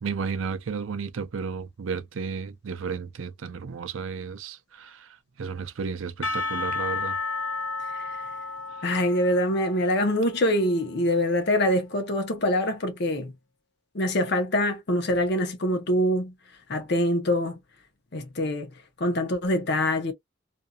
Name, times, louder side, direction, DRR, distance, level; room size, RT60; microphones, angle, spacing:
voice 1, 0.0-7.2, right 5 dB, 85° right, 0.5 m, -33 dB
Percussion / Church bell, 6.2-11.5, left 3 dB, 90° left, 0.9 m, -33 dB
voice 2, 8.8-13.3 13.9-16.3 16.7-17.6 18.1-18.7 19.0-20.1, left 1 dB, 55° left, 0.7 m, -24 dB
2.7 x 2.5 x 2.2 m
head